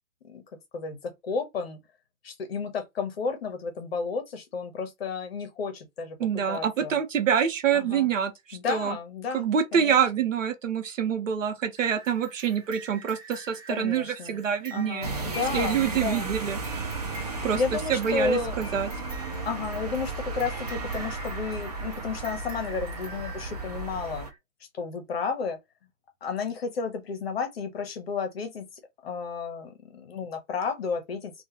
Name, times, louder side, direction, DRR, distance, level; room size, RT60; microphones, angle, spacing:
voice 1, 0.7-1.8 2.2-7.0 7.7-8.1 8.5-9.5 9.7-10.0 13.7-14.4 14.7-16.3 17.6-18.6 19.4-24.3 24.7-25.6 26.2-28.7 29.0-31.3, left 5 dB, 45° left, 0.9 m, -32 dB
voice 2, 6.2-9.0 9.3-15.1 15.5-16.6 17.4-18.9, right 8 dB, 65° right, 0.9 m, -26 dB
sound 1, 11.7-24.4, right 1 dB, 15° right, 1.1 m, -45 dB
sound 2, 15.0-24.3, right 4 dB, 30° right, 0.4 m, -34 dB
2.4 x 2.3 x 2.9 m
hypercardioid pair, 145°, 42 cm